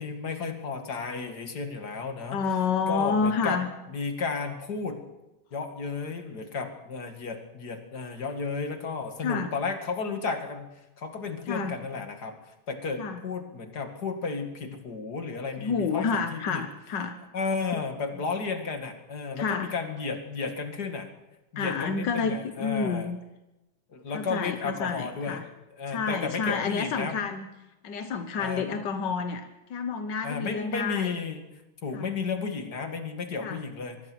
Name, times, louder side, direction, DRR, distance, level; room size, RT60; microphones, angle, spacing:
voice 1, 0.0-2.4 2.9-3.6 3.9-5.0 5.5-10.7 11.0-12.4 12.7-16.6 17.3-21.1 21.5-23.1 23.9-25.4 25.8-27.3 28.4-28.8 30.2-31.4 31.8-34.0, left 4 dB, 35° left, 6 dB, 2.4 m, -33 dB
voice 2, 2.3-3.7 9.2-9.5 11.5-11.8 13.0-13.2 15.5-17.1 17.7-17.8 19.4-19.7 21.6-23.2 24.1-25.5 25.9-27.5 27.8-31.1 31.9-32.1 33.4-33.6, left 5 dB, 60° left, 8 dB, 1.2 m, -29 dB
24.0 x 22.0 x 6.3 m, 0.98 s
omnidirectional pair, 3.4 m